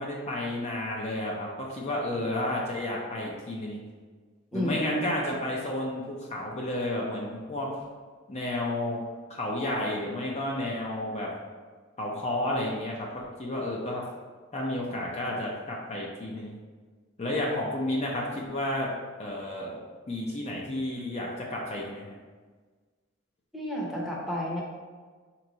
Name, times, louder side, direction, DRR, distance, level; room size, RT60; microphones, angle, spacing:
voice 1, 0.0-3.8 4.5-7.7 8.3-9.0 9.3-11.3 12.0-14.0 14.5-16.5 17.2-18.9 19.2-19.8 20.1-22.1, left 1 dB, 35° left, -2 dB, 0.6 m, -31 dB
voice 2, 4.5-5.0 23.5-24.6, left 1 dB, ahead, -4 dB, 0.8 m, -31 dB
4.5 x 3.0 x 3.9 m, 1.5 s
head